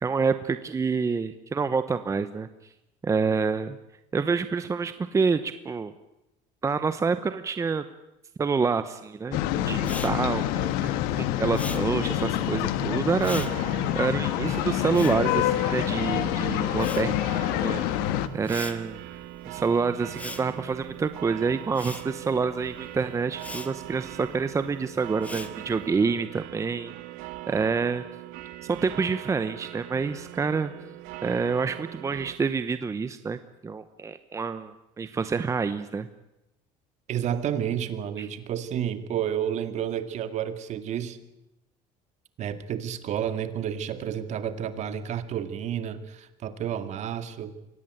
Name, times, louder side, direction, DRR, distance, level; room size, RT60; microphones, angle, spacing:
voice 1, 0.0-2.5 3.0-3.8 4.1-5.9 6.6-7.8 8.4-17.8 18.3-19.0 19.5-26.9 27.5-28.0 28.7-30.7 31.2-36.1 38.2-38.3, right 5 dB, 20° right, 11 dB, 0.9 m, -27 dB
sound 1, 9.3-18.3, left 12 dB, 85° left, 1.5 m, -27 dB
Respiratory sounds, 9.8-16.2 16.5-26.0, left 2 dB, 10° left, 1.8 m, -42 dB
sound 2, 13.3-32.4, right 16 dB, 75° right, 1.4 m, -41 dB
voice 2, 37.1-41.2 42.4-47.5, right 9 dB, 50° right, 10 dB, 2.1 m, -30 dB
24.0 x 18.0 x 9.2 m, 0.90 s
cardioid pair, 125°, 15 cm